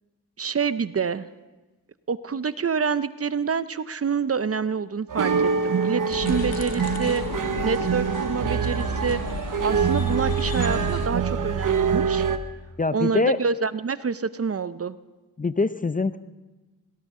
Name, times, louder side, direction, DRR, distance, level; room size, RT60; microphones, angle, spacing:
voice 1, 0.4-1.3 2.1-7.2 7.6-12.3 12.9-15.0, right 5 dB, 40° right, 15 dB, 0.6 m, -27 dB
sound 1, 5.1-12.4, right 6 dB, 60° right, 1.0 m, -25 dB
sound 2, 6.1-11.1, left 6 dB, 75° left, 1.0 m, -34 dB
voice 2, 12.8-13.4 15.4-16.2, left 3 dB, 25° left, 14 dB, 0.5 m, -23 dB
18.5 x 17.0 x 3.7 m, 1.2 s
cardioid pair, 45°, 36 cm